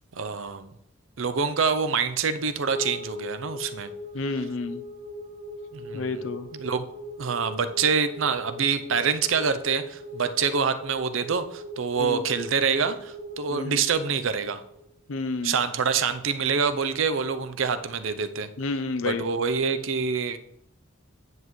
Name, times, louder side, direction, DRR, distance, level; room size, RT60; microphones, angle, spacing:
voice 1, 0.1-0.7 1.2-3.9 5.7-6.3 6.5-6.8 7.2-14.6 15.4-18.5 19.0-20.4, right 5 dB, 65° right, 11 dB, 0.6 m, -26 dB
sound 1, 2.7-15.2, equal, 35° right, 2.0 m, -40 dB
voice 2, 4.1-4.8 5.9-6.5 12.0-12.2 13.5-13.8 15.1-15.6 18.6-19.2, left 3 dB, 70° left, 10 dB, 0.6 m, -30 dB
9.2 x 8.0 x 3.2 m, 0.77 s
head